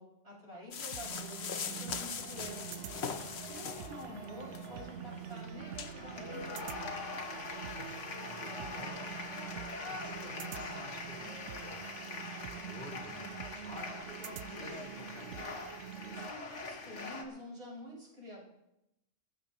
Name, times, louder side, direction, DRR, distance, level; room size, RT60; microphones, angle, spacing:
voice 1, 0.0-7.3 16.2-18.5, left 1 dB, 60° right, -5 dB, 6.3 m, -49 dB
sound 1, 0.7-4.0 4.5-4.7 5.2-5.3 5.7-5.9, left 7 dB, 65° left, 1.1 m, -40 dB
sound 2, 0.9-16.3, right 10 dB, 85° right, 1.0 m, -46 dB
sound 3, 2.3-17.2, left 3 dB, 85° left, 1.9 m, -44 dB
voice 2, 7.7-9.4 9.8-15.6, equal, 45° left, -3 dB, 4.5 m, -51 dB
20.0 x 15.0 x 3.0 m, 0.89 s
omnidirectional pair, 1.2 m